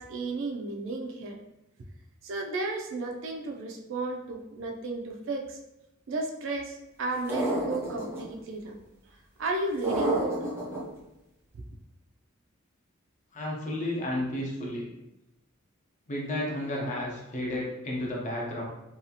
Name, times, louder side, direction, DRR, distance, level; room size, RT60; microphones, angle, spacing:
voice 1, 0.0-1.4 2.2-5.6 6.1-8.8 9.4-10.5, right 2 dB, 65° right, 2 dB, 0.4 m, -33 dB
sound 1, 7.3-8.2 9.8-10.8, right 1 dB, 10° right, 0.6 m, -28 dB
voice 2, 13.3-14.8 16.1-18.6, left 1 dB, 40° left, -3 dB, 0.7 m, -32 dB
2.7 x 2.3 x 2.8 m, 0.91 s
head